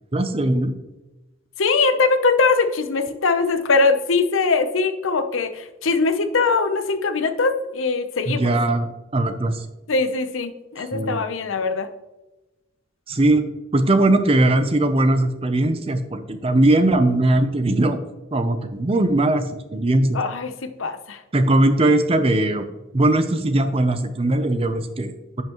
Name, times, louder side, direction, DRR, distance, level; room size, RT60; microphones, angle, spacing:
voice 1, 0.1-0.7 8.3-9.7 10.9-11.2 13.1-13.4 13.7-18.0 18.3-19.4 19.7-20.2 21.3-22.7 22.9-25.4, right 2 dB, 30° right, 9 dB, 0.6 m, -19 dB
voice 2, 1.6-8.5 9.9-11.9 20.1-20.5 20.8-21.2, left 4 dB, 75° left, 8 dB, 0.7 m, -21 dB
10.5 x 5.7 x 3.0 m, 1.0 s
head